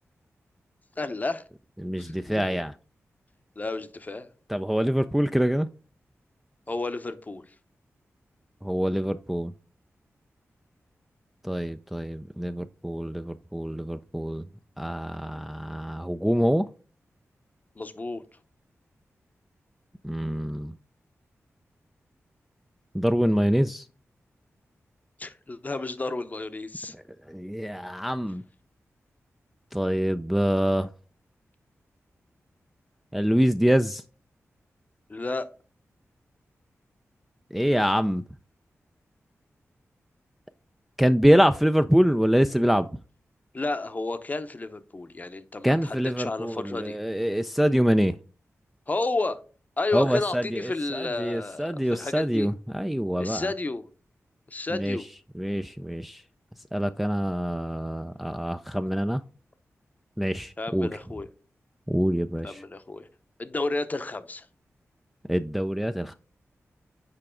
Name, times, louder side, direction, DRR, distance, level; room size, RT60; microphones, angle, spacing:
voice 1, 1.0-1.4 2.0-2.4 3.6-4.3 6.7-7.4 17.8-18.2 25.2-26.9 35.1-35.5 43.5-47.0 48.9-49.4 49.8-52.5 53.2-53.8 54.5-55.0 60.6-61.3 62.4-63.1 63.4-64.5, left 2 dB, 30° left, 0.7 m, -31 dB
voice 2, 1.8-2.8 4.5-5.7 8.6-9.5 11.4-14.4 14.8-16.7 20.0-20.7 22.9-23.9 26.9-28.4 29.7-30.9 33.1-34.0 37.5-38.2 41.0-42.9 45.6-48.2 49.9-53.5 54.7-55.0 55.3-56.2 56.7-59.2 60.2-60.9 61.9-62.6 65.3-66.1, equal, 5° right, 0.3 m, -25 dB
6.8 x 4.7 x 3.7 m
wide cardioid pair, 80°, 5 cm